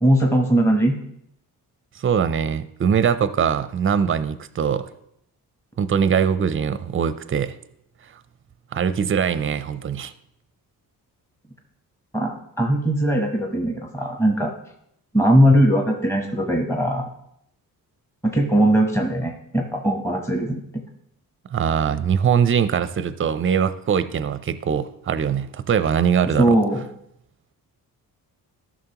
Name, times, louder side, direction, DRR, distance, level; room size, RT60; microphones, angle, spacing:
voice 1, 0.0-1.0 12.1-14.5 15.1-17.1 18.3-20.6 26.4-26.8, right 1 dB, 5° left, 2 dB, 1.0 m, -19 dB
voice 2, 2.0-4.8 5.8-7.6 8.7-10.1 21.5-26.6, right 7 dB, 35° right, 13 dB, 0.5 m, -22 dB
13.0 x 6.2 x 3.0 m, 0.75 s
cardioid pair, 95°, 36 cm